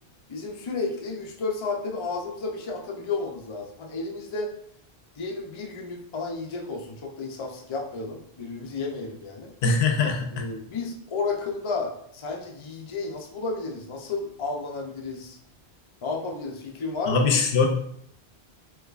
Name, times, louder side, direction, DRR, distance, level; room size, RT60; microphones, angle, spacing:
voice 1, 0.3-4.5 5.2-9.5 10.3-15.4 16.0-17.2, left 3 dB, 40° left, 0 dB, 0.4 m, -32 dB
voice 2, 9.6-10.4 17.1-17.7, left 4 dB, 75° left, 3 dB, 0.8 m, -22 dB
3.4 x 3.1 x 2.4 m, 0.67 s
omnidirectional pair, 1.1 m